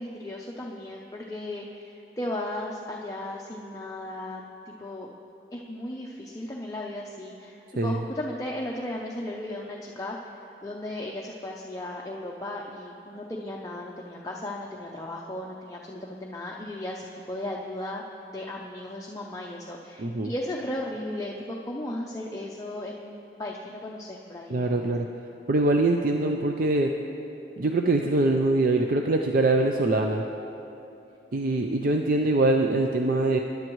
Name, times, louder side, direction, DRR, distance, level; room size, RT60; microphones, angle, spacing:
voice 1, 0.0-5.1 5.5-10.2 10.6-18.0 18.3-24.9, left 1 dB, 20° left, -2 dB, 0.6 m, -36 dB
voice 2, 20.0-20.3 24.5-25.1 25.5-26.9 27.6-30.2 31.3-33.4, right 2 dB, 50° right, 3 dB, 0.5 m, -23 dB
20.5 x 10.5 x 3.1 m, 2.9 s
head